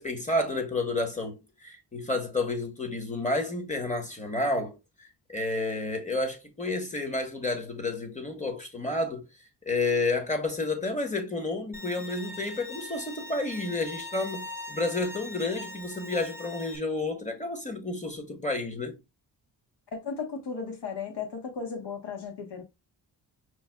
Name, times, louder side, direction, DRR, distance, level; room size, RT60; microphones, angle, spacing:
voice 1, 0.0-9.2 9.6-19.0, left 2 dB, 15° left, 1.2 m, -30 dB
Bowed string instrument, 11.7-16.8, left 2 dB, 5° right, 0.9 m, -41 dB
voice 2, 19.9-22.6, left 5 dB, 70° left, 1.3 m, -35 dB
5.9 x 2.4 x 2.2 m
cardioid pair, 70°, 42 cm